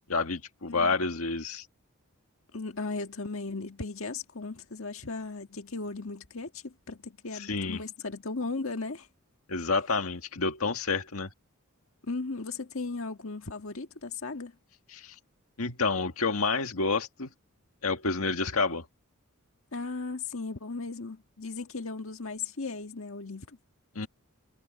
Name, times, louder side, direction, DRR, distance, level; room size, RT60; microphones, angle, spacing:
voice 1, 0.1-1.7 7.3-7.8 9.5-11.3 14.9-15.2 15.6-17.3 17.8-18.9 24.0-24.1, left 4 dB, 85° left, 1.8 m, -29 dB
voice 2, 0.7-1.0 2.5-9.1 12.0-14.5 19.7-23.6, left 3 dB, 70° left, 1.8 m, -36 dB
head